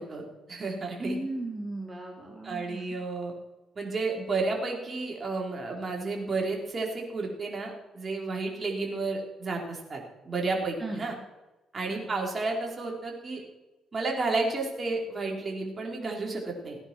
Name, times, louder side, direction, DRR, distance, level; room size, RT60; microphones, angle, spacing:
voice 1, 0.0-1.2 2.4-3.3 3.7-11.2 11.7-13.4 13.9-16.8, right 3 dB, 35° right, 0 dB, 4.7 m, -32 dB
voice 2, 1.0-2.8 10.8-11.0 11.9-12.1, right 2 dB, 20° right, -2 dB, 3.4 m, -36 dB
18.5 x 9.8 x 6.4 m, 1.1 s
cardioid pair, 90°, 0 cm